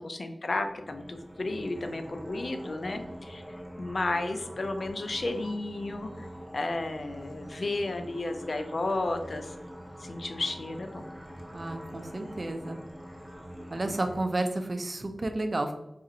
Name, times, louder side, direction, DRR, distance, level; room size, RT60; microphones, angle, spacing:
voice 1, 0.0-6.3 6.5-9.5 10.0-11.0, left 2 dB, 70° left, 6 dB, 0.4 m, -33 dB
sound 1, 0.6-14.2, equal, ahead, 0.7 m, -44 dB
voice 2, 11.5-12.8 13.7-15.7, right 2 dB, 55° right, 6 dB, 0.4 m, -31 dB
4.0 x 2.5 x 2.7 m, 0.90 s
cardioid pair, 45°, 0 cm